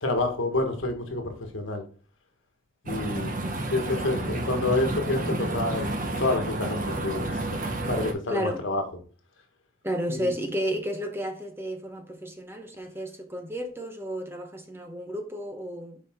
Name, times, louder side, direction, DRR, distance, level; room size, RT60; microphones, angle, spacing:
voice 1, 0.0-1.8 2.8-3.3 3.7-5.9 6.2-7.5 7.9-8.8 10.1-10.3, left 2 dB, 75° left, 1.5 m, -28 dB
sound 1, 2.9-8.1, right 1 dB, 40° right, 1.1 m, -30 dB
voice 2, 3.4-3.8 8.3-8.6 9.8-16.0, equal, 10° right, 0.8 m, -32 dB
7.0 x 5.0 x 3.6 m
head